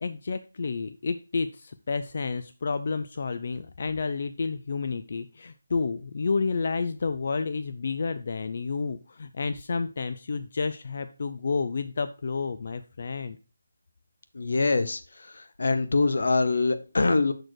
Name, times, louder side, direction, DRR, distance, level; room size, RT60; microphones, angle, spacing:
voice 1, 0.0-13.4, left 4 dB, 40° left, 0.3 m, -30 dB
voice 2, 14.3-17.3, left 3 dB, 60° left, 0.7 m, -24 dB
6.3 x 4.3 x 4.6 m
figure-of-eight pair, 175°, 0 cm